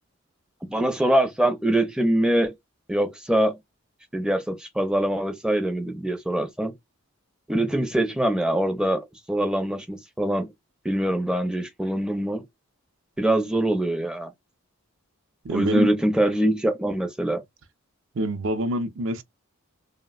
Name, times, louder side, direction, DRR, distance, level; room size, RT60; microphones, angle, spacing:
voice 1, 0.6-2.5 2.9-3.6 4.1-6.7 7.5-10.5 10.8-12.4 13.2-14.3 15.5-17.4, right 1 dB, 5° right, 0.4 m, -24 dB
voice 2, 15.4-15.9 18.1-19.2, right 1 dB, 60° right, 0.5 m, -26 dB
3.1 x 2.1 x 2.3 m
head